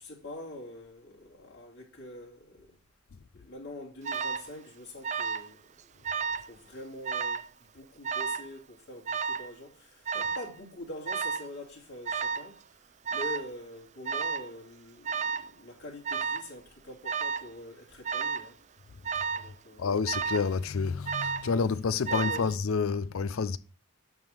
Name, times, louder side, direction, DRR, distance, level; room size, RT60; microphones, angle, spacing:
voice 1, 0.0-2.8 3.3-5.6 5.9-6.0 6.5-12.6 13.1-18.6 19.3-19.9 22.1-22.4, left 1 dB, 55° left, 2.7 m, -44 dB
Alarm, 4.0-4.5 5.0-5.5 5.8-6.5 7.0-7.5 8.0-8.5 9.1-9.5 10.1-10.5 11.1-11.5 12.1-12.5 13.1-13.5 14.1-14.5 15.0-15.5 16.0-16.5 17.0-17.5 18.0-18.5 19.0-19.5 20.1-20.5 21.1-21.5 22.1-22.5, right 6 dB, 35° right, 0.4 m, -32 dB
voice 2, 19.8-23.6, left 5 dB, 75° left, 0.5 m, -29 dB
8.8 x 3.6 x 6.3 m
head